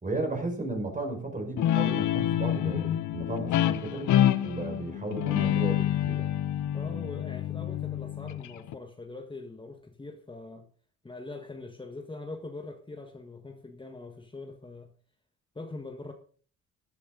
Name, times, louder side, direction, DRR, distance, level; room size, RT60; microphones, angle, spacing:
voice 1, 0.0-4.1 4.4-6.3, right 2 dB, 25° right, 5.2 m, -34 dB
Guitar, 1.6-8.7, left 11 dB, 75° left, 1.0 m, -27 dB
voice 2, 6.7-10.7 11.0-14.9 15.5-16.1, left 3 dB, 15° left, 1.6 m, -42 dB
14.0 x 11.5 x 3.9 m
cardioid pair, 90°, 30 cm